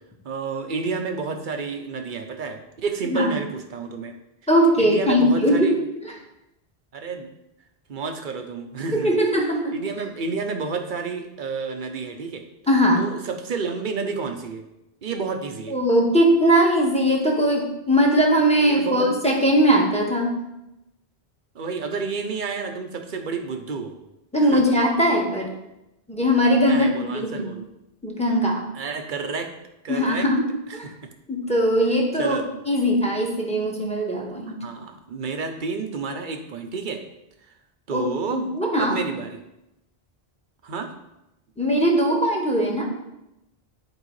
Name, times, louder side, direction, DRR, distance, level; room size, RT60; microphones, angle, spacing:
voice 1, 0.2-4.2 4.8-5.7 6.9-7.3 7.9-9.2 9.7-12.4 13.0-14.6 15.0-15.8 18.6-19.1 21.5-23.9 24.5-24.6 26.7-27.6 28.7-29.5 29.8-30.3 30.7-31.1 32.2-32.5 34.5-37.0 37.9-38.5 38.8-39.4 40.6-40.9, right 4 dB, 55° right, 6 dB, 0.9 m, -30 dB
voice 2, 4.5-5.7 8.9-9.8 12.7-13.0 15.7-20.4 24.3-25.5 26.1-27.5 28.0-28.6 29.9-30.5 30.7-30.8 31.3-34.5 37.9-39.0 41.6-42.9, equal, 5° left, -1 dB, 1.2 m, -20 dB
11.0 x 4.7 x 3.2 m, 0.90 s
omnidirectional pair, 1.0 m